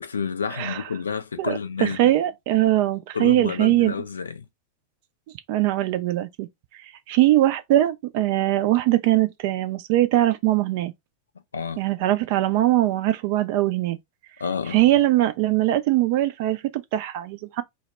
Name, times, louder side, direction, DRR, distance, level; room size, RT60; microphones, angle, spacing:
voice 1, 0.0-2.0 3.1-4.5 11.5-11.8 14.4-14.8, left 6 dB, 70° left, 0.3 m, -29 dB
voice 2, 0.5-0.8 1.4-3.9 5.5-6.5 7.1-10.9 11.8-14.0 14.7-17.6, right 15 dB, 50° right, 0.3 m, -21 dB
2.1 x 2.0 x 3.2 m
figure-of-eight pair, 90°, 0 cm